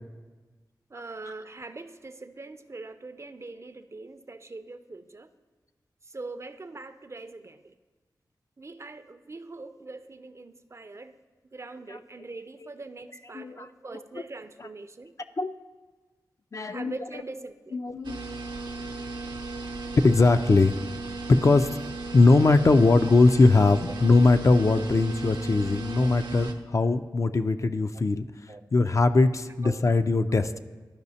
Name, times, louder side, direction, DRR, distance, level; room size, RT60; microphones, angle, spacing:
voice 1, 0.9-5.3 6.0-7.7 8.6-11.1 11.5-15.2 16.6-17.8 19.8-19.9 26.0-26.1 28.5-28.6 29.6-29.8 30.5-30.6, right 3 dB, 35° right, 10 dB, 0.4 m, -42 dB
voice 2, 13.3-13.7 15.4-15.5 16.5-16.9 17.7-18.2 20.0-20.8 21.3-21.7 22.1-28.3 28.7-30.6, left 3 dB, 40° left, 10 dB, 0.3 m, -20 dB
sound 1, 18.0-26.5, right 3 dB, 80° right, 0.7 m, -36 dB
12.0 x 4.9 x 2.7 m, 1.3 s
cardioid pair, 45°, 8 cm